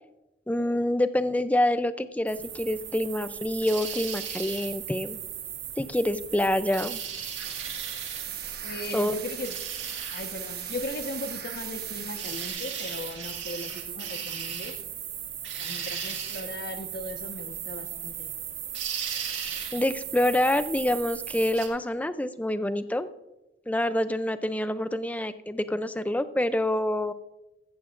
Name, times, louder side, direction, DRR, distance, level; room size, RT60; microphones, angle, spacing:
voice 1, 0.5-5.2 5.8-7.0 8.9-9.1 19.7-23.1 23.7-27.1, left 1 dB, 10° left, 12 dB, 0.4 m, -26 dB
sound 1, 2.3-21.7, right 9 dB, 80° right, 2.0 m, -36 dB
sound 2, 7.3-12.5, right 8 dB, 55° right, 1.2 m, -42 dB
voice 2, 8.6-9.5 10.1-14.8 15.6-18.3, left 2 dB, 55° left, 6 dB, 1.3 m, -38 dB
14.5 x 14.5 x 2.5 m, 0.96 s
head